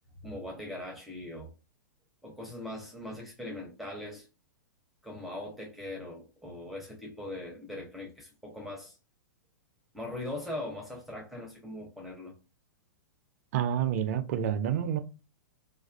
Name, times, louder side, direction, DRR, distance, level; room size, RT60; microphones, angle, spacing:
voice 1, 0.2-1.5 2.2-4.3 5.0-9.0 9.9-12.3, left 1 dB, ahead, 0.6 m, -40 dB
voice 2, 13.5-15.0, right 9 dB, 50° right, 0.4 m, -28 dB
2.4 x 2.3 x 2.2 m
figure-of-eight pair, 105°, 10 cm